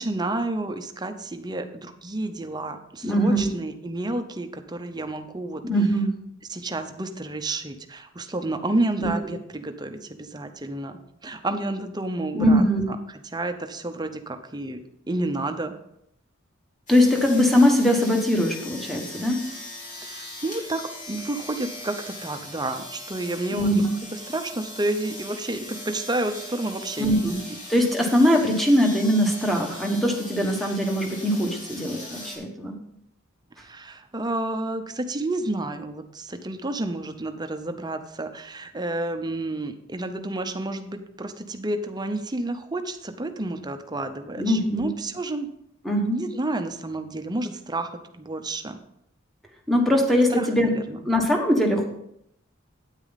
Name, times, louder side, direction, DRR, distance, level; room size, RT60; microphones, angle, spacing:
voice 1, 0.0-5.6 6.5-13.0 13.2-15.7 20.0-23.8 24.1-27.6 33.6-45.5 46.1-48.8 50.3-51.0, right 2 dB, 20° right, 7 dB, 0.8 m, -30 dB
voice 2, 3.0-3.5 5.6-6.1 9.0-9.1 12.3-12.9 16.9-19.5 23.5-23.9 27.0-27.4 27.7-32.8 44.4-44.9 45.8-46.2 49.7-50.7 51.0-51.9, equal, ahead, 1 dB, 1.5 m, -21 dB
sound 1, 16.9-32.4, left 1 dB, 40° left, 3.0 m, -40 dB
9.5 x 9.1 x 4.1 m, 0.75 s
head